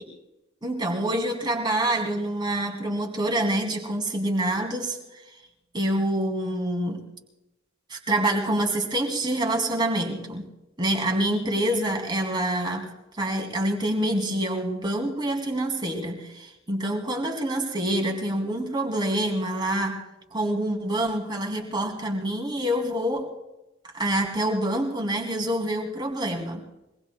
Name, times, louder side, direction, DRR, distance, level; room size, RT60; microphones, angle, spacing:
voice 1, 0.6-5.0 5.7-7.1 7.9-10.5 10.8-12.9 13.2-20.0 20.3-23.3 23.9-26.6, right 1 dB, 25° right, 1 dB, 2.7 m, -26 dB
25.0 x 19.5 x 2.3 m, 0.96 s
head